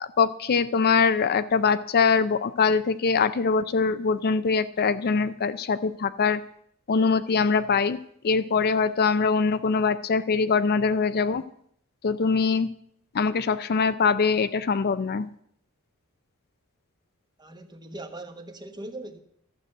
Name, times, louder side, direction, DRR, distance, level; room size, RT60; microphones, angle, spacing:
voice 1, 0.0-6.4 6.9-8.0 8.2-11.4 12.0-12.7 13.1-15.3, left 5 dB, 45° left, 0.5 m, -23 dB
voice 2, 17.4-19.2, right 2 dB, 20° right, 1.1 m, -40 dB
12.5 x 7.6 x 7.7 m
head